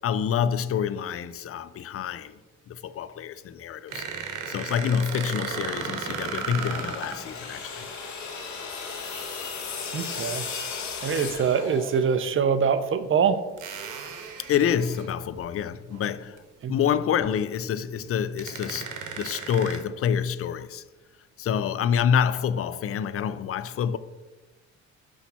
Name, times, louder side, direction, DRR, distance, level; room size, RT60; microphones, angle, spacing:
voice 1, 0.0-2.4 2.7-4.0 4.5-7.9 8.1-8.3 14.4-16.4 16.7-20.8 21.4-24.0, left 8 dB, 50° left, 0.5 m, -27 dB
sound 1, 3.9-7.2 9.3-9.5 11.2-11.3 12.2-12.3 13.6-15.4 15.9-16.1 16.4-16.5 18.0-18.1 18.4-19.8, right 6 dB, 85° right, 1.2 m, -35 dB
sound 2, 6.4-12.3, left 5 dB, 70° left, 1.6 m, -36 dB
voice 2, 9.9-10.5 11.0-13.4 16.6-16.7, right 6 dB, 45° right, 0.7 m, -24 dB
6.3 x 5.5 x 4.2 m
cardioid pair, 90°, 30 cm